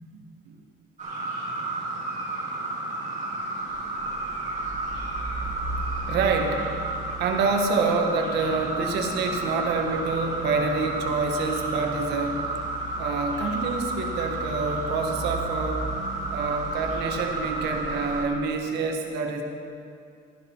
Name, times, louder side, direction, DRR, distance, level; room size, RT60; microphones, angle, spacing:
sound 1, 1.0-18.2, right 2 dB, 45° right, 2.7 m, -32 dB
sound 2, 3.6-18.3, right 1 dB, 25° right, 2.9 m, -39 dB
voice 1, 6.1-6.7 7.2-12.4 13.0-15.9 16.3-19.4, right 4 dB, 80° right, 3 dB, 1.5 m, -27 dB
13.0 x 11.0 x 4.6 m, 2.4 s
cardioid pair, 110°, 17 cm